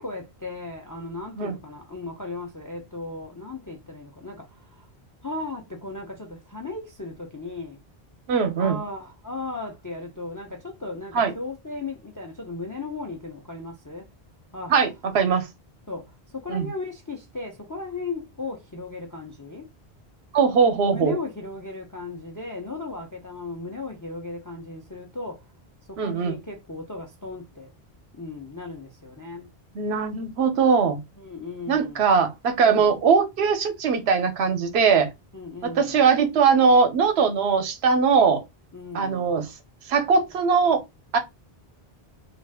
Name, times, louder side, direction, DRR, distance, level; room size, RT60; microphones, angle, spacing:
voice 1, 0.0-4.9 5.2-7.8 8.6-14.1 14.5-14.8 15.9-19.7 20.8-25.5 25.9-27.7 28.1-29.5 31.2-32.0 32.6-32.9 35.3-36.0 38.7-39.3, left 3 dB, 25° left, 0.4 m, -36 dB
voice 2, 8.3-8.8 11.1-11.3 14.7-14.9 15.1-15.4 16.5-16.7 20.3-21.2 26.0-26.3 29.7-31.0 31.7-35.1 35.6-38.4 38.9-39.5 39.9-40.8 41.1-41.2, right 5 dB, 85° right, 0.9 m, -20 dB
2.4 x 2.4 x 3.3 m
omnidirectional pair, 1.0 m